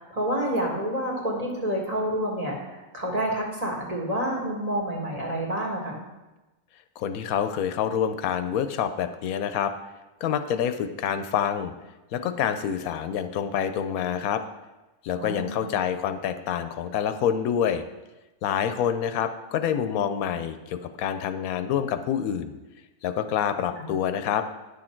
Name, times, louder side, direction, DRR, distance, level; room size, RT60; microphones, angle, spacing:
voice 1, 0.0-6.0 15.2-15.7 23.8-23.9, right 1 dB, 25° right, -2 dB, 1.7 m, -29 dB
voice 2, 7.0-9.7 10.2-11.7 12.1-14.4 15.0-17.8 18.4-22.5 23.0-24.5, left 8 dB, 85° left, 10 dB, 1.1 m, -27 dB
10.0 x 6.4 x 4.4 m, 1.1 s
omnidirectional pair, 1.5 m